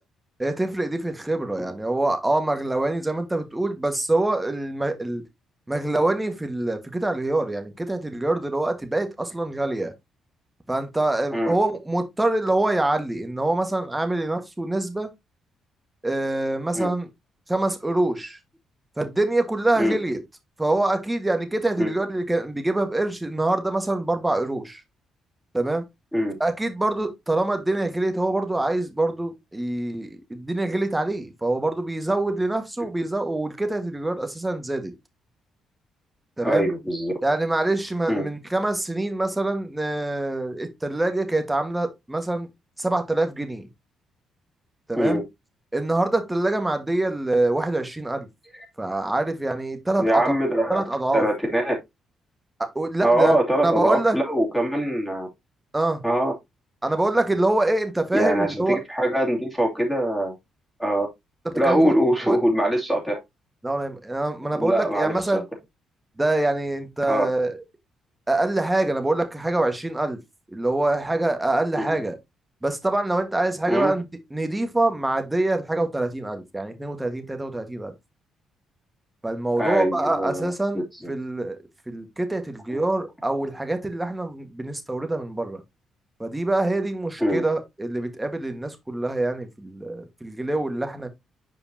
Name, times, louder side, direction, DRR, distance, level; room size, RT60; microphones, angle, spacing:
voice 1, 0.4-5.2 5.7-9.9 10.7-15.1 16.0-17.1 17.5-18.4 19.0-20.2 20.6-24.8 25.5-25.8 26.4-34.9 36.4-36.7 37.2-42.5 42.8-43.7 44.9-45.2 45.7-48.3 48.8-50.2 50.7-51.2 52.7-53.3 53.6-54.2 55.7-56.0 56.8-58.8 61.4-61.9 62.3-62.4 63.6-65.4 66.2-67.6 68.3-70.2 70.5-72.2 72.6-77.9 79.2-80.8 81.1-81.6 81.9-85.6 86.2-91.1, right 2 dB, 10° right, 1.5 m, -25 dB
voice 2, 36.4-37.1 38.1-38.2 44.9-45.2 50.0-50.8 51.1-51.8 53.0-55.3 56.0-56.3 58.1-60.3 60.8-61.1 61.5-63.2 64.5-65.4 67.1-67.2 71.7-72.0 73.7-73.9 79.6-80.5 82.7-82.8 87.2-87.4, right 1 dB, 5° left, 2.5 m, -23 dB
7.3 x 5.1 x 2.8 m
cardioid pair, 90°, 0 cm